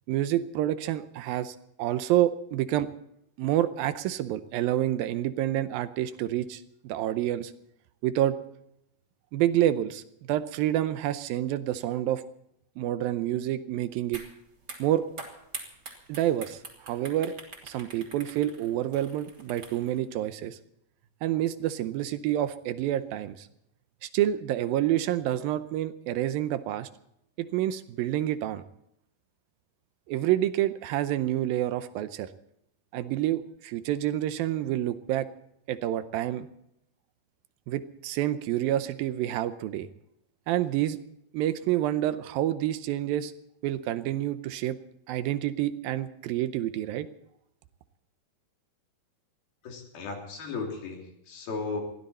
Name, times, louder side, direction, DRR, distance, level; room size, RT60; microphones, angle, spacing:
voice 1, 0.1-2.9 3.4-7.5 8.0-8.4 9.3-10.0 10.3-12.2 12.8-14.2 14.8-15.0 16.1-17.3 17.6-20.6 21.2-23.5 24.0-26.9 27.4-28.6 30.1-32.3 32.9-35.3 35.7-36.5 37.7-39.9 40.5-41.0 41.3-43.3 43.6-44.8 45.1-47.1, right 13 dB, 80° right, 12 dB, 2.5 m, -28 dB
sound 1, 14.1-14.3 14.6-20.0, right 3 dB, 30° right, 3.1 m, -44 dB
voice 2, 49.6-51.8, left 4 dB, 75° left, 1 dB, 5.0 m, -35 dB
21.0 x 15.5 x 4.3 m, 0.78 s
omnidirectional pair, 4.3 m